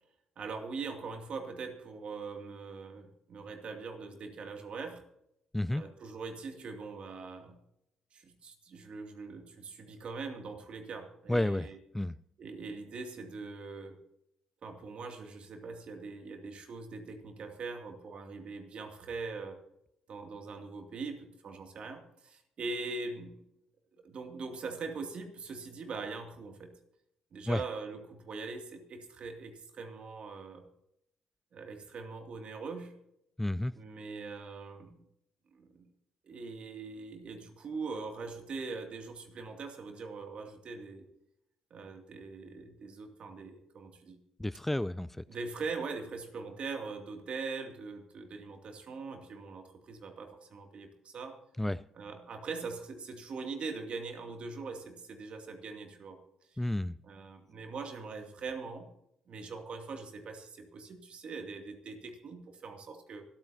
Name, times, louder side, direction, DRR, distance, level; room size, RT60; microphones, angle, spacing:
voice 1, 0.4-5.0 5.7-7.6 8.1-11.8 12.4-14.0 14.6-19.6 20.1-23.4 24.0-26.7 27.3-30.6 31.5-32.9 33.8-35.0 35.5-35.8 36.2-41.1 41.7-44.2 45.3-51.4 52.0-56.2 56.5-56.6 57.0-58.9 59.3-63.2, right 4 dB, 55° right, 4 dB, 2.5 m, -42 dB
voice 2, 11.3-11.7 11.9-12.2 27.5-27.6 33.4-33.7 44.4-45.2 51.6-51.8 56.6-57.0, left 1 dB, 10° left, 16 dB, 0.4 m, -31 dB
25.0 x 8.7 x 2.8 m, 0.80 s
hypercardioid pair, 55°, 2 cm